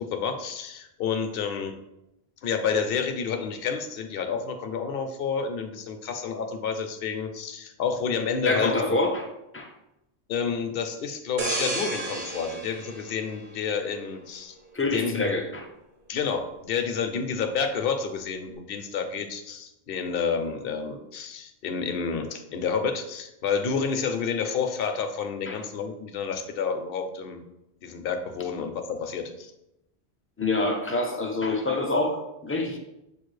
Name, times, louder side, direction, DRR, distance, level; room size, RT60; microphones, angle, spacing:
voice 1, 0.0-1.8 2.4-9.0 10.3-14.6 14.9-15.4 16.1-27.4 27.8-29.5, left 6 dB, 65° left, 7 dB, 0.7 m, -29 dB
voice 2, 8.4-9.3 9.5-9.7 14.7-15.6 25.5-25.6 30.4-32.8, left 2 dB, 20° left, 1 dB, 0.3 m, -26 dB
sound 1, 11.4-14.1 14.5-14.7, right 2 dB, 50° right, 0.9 m, -32 dB
7.1 x 2.4 x 3.1 m, 0.89 s
omnidirectional pair, 1.1 m